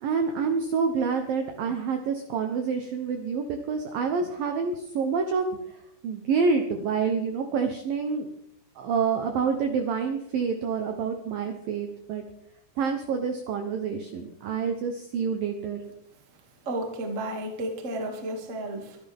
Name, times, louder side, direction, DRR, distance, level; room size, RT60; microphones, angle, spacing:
voice 1, 0.0-5.5 6.0-8.3 8.8-12.2 12.8-15.8, right 5 dB, 75° right, 5 dB, 2.1 m, -27 dB
voice 2, 16.6-19.0, right 1 dB, 35° right, 2 dB, 1.1 m, -32 dB
24.5 x 11.0 x 3.6 m, 0.77 s
omnidirectional pair, 5.4 m